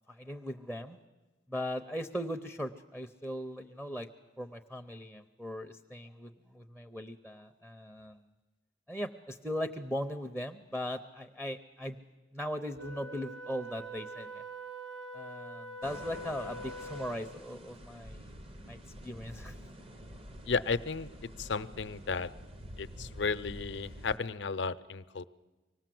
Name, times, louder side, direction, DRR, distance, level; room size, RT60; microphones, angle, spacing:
voice 1, 0.1-1.0 1.5-4.1 4.4-8.3 8.9-12.0 12.3-14.4 15.1-18.3 18.7-19.6, equal, 5° right, 6 dB, 0.6 m, -39 dB
Wind instrument woodwind instrument, 12.8-17.4, right 1 dB, 90° right, 1.7 m, -44 dB
sound 1, 15.8-24.2, equal, 30° right, 0.9 m, -48 dB
voice 2, 20.5-21.1 21.4-22.3 22.8-25.2, left 4 dB, 70° left, 12 dB, 0.6 m, -33 dB
25.5 x 18.5 x 7.7 m, 1.2 s
head